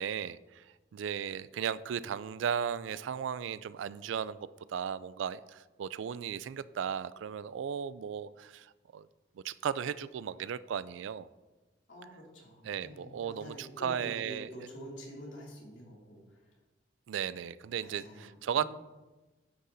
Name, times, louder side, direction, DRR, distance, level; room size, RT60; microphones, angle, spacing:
voice 1, 0.0-4.4 4.7-9.1 9.4-11.3 12.6-14.5 17.1-18.7, right 8 dB, 80° right, 17 dB, 0.3 m, -36 dB
voice 2, 11.9-16.2 17.8-18.7, equal, 85° left, -3 dB, 2.4 m, -47 dB
9.8 x 8.2 x 2.6 m, 1.2 s
head